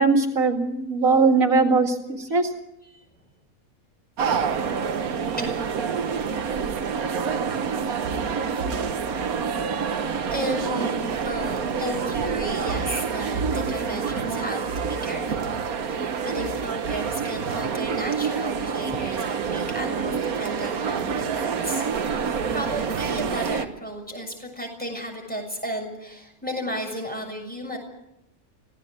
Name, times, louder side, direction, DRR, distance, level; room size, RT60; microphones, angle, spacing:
voice 1, 0.0-2.5, right 4 dB, 70° right, 4 dB, 2.5 m, -20 dB
sound 1, 4.2-23.6, right 6 dB, 90° right, 1.6 m, -27 dB
voice 2, 10.3-10.9 11.2-27.8, equal, 5° left, 1 dB, 6.9 m, -34 dB
25.5 x 17.5 x 8.4 m, 0.89 s
omnidirectional pair, 1.5 m